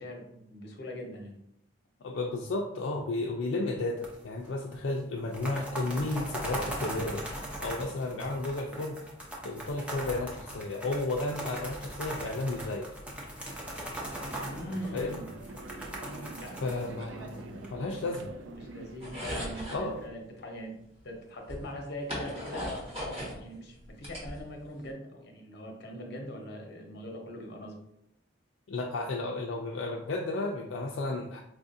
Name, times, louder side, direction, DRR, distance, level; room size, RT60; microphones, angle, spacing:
voice 1, 0.0-1.3 14.4-15.3 16.0-16.8 18.5-20.7 21.0-27.7, equal, 60° left, 2 dB, 0.8 m, -42 dB
voice 2, 2.0-7.3 7.6-9.0 9.4-12.9 14.7-15.1 16.6-18.3 19.7-20.0 28.7-31.4, left 2 dB, 80° left, 0 dB, 0.4 m, -33 dB
sound 1, 4.0-4.5 4.7-4.8 5.2-17.7, right 1 dB, 5° right, 0.7 m, -39 dB
sound 2, 13.9-20.1, right 2 dB, 75° right, 0.4 m, -46 dB
sound 3, 19.0-19.8 21.0-21.1 21.5-23.4 23.8-24.8, equal, 30° right, 1.3 m, -37 dB
4.7 x 2.4 x 2.6 m, 0.79 s
head